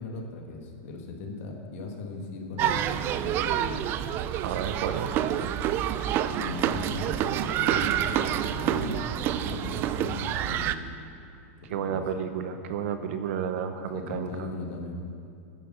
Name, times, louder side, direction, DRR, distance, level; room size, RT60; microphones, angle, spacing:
voice 1, 0.0-3.8 6.3-10.8 11.6-12.0 13.9-15.0, left 3 dB, 60° left, 2 dB, 2.0 m, -38 dB
sound 1, 2.6-10.8, right 11 dB, 30° right, 0.3 m, -28 dB
voice 2, 4.4-5.1 11.7-14.3, right 7 dB, 60° right, 8 dB, 0.9 m, -31 dB
10.0 x 8.4 x 6.3 m, 2.5 s
supercardioid pair, 160°, 8 cm